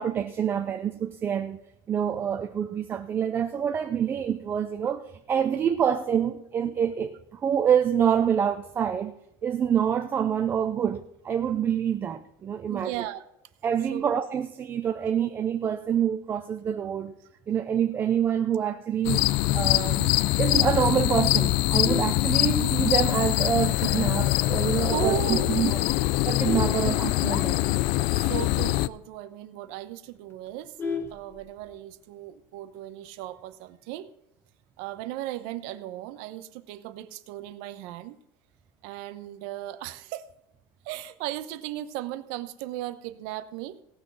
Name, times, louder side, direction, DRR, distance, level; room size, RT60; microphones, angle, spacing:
voice 1, 0.0-1.6 1.9-9.2 9.4-12.9 13.6-17.1 17.5-19.2 19.5-20.1 20.4-25.8 26.3-27.6, right 8 dB, 20° right, 0.4 m, -26 dB
voice 2, 12.7-13.2 13.9-14.1 24.9-25.5 26.6-27.0 28.1-30.7 31.1-34.1 34.8-38.2 38.8-40.2 40.8-43.8, right 13 dB, 60° right, 0.9 m, -36 dB
sound 1, 19.0-28.9, left 18 dB, 55° left, 0.4 m, -24 dB
Vehicle horn car horn honking, 21.6-23.0 23.5-23.7 24.1-24.2 24.6-24.7 25.0-25.3 25.9-27.7 28.1-28.2 28.5-28.6 29.0-29.1 29.4-29.5 29.8-31.8 33.0-33.5, left 4 dB, 20° left, 1.3 m, -36 dB
17.0 x 6.3 x 5.5 m
cardioid pair, 175°, 11 cm